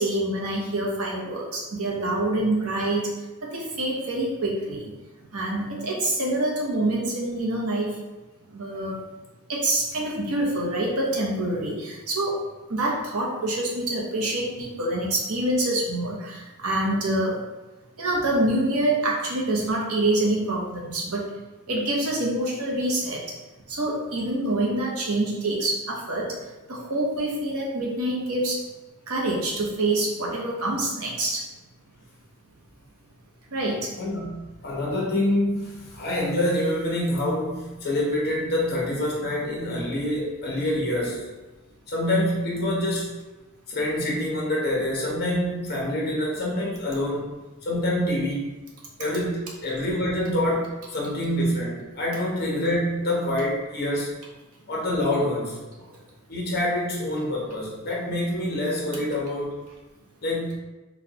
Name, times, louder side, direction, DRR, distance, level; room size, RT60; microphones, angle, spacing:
voice 1, 0.0-3.1 3.4-4.9 5.3-8.0 8.5-9.0 9.5-12.3 12.7-17.4 18.0-21.3 21.7-23.2 23.7-26.3 26.7-28.6 29.1-31.4 33.5-33.9 55.8-56.0, right 1 dB, 75° right, -3 dB, 0.9 m, -26 dB
voice 2, 34.0-41.3 41.9-43.1 43.7-47.3 47.6-48.5 49.0-54.1 54.7-55.6 56.3-59.5 60.2-60.6, left 1 dB, 45° left, -3 dB, 1.0 m, -26 dB
4.0 x 2.3 x 2.9 m, 1.1 s
head